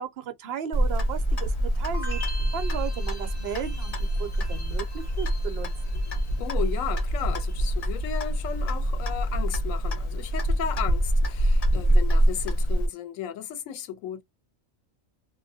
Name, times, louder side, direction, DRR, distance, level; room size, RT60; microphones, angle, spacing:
voice 1, 0.0-6.0, right 8 dB, 60° right, 0.7 m, -35 dB
Clock, 0.7-12.9, equal, 60° left, 0.4 m, -25 dB
sound 1, 1.9-7.0 7.3-7.9, left 1 dB, 40° left, 0.8 m, -44 dB
voice 2, 6.4-14.2, left 9 dB, 80° left, 1.0 m, -35 dB
2.3 x 2.1 x 2.6 m
omnidirectional pair, 1.3 m